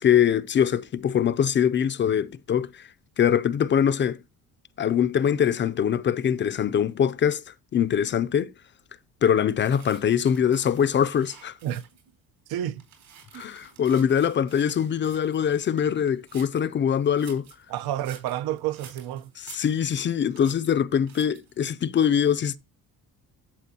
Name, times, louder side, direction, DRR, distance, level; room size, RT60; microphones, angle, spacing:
voice 1, 0.0-2.9 3.2-4.2 4.8-8.5 9.2-11.6 13.3-17.4 19.4-22.6, left 8 dB, 30° left, 0.4 m, -23 dB
sound 1, 9.6-12.1 12.5-16.7 17.0-20.1 20.4-20.7 21.1-21.6, right 8 dB, 70° right, 4.4 m, -51 dB
voice 2, 12.5-12.8 13.3-13.4 17.7-19.3, right 12 dB, 85° right, 0.8 m, -30 dB
12.0 x 7.3 x 2.7 m
cardioid pair, 170°, 36 cm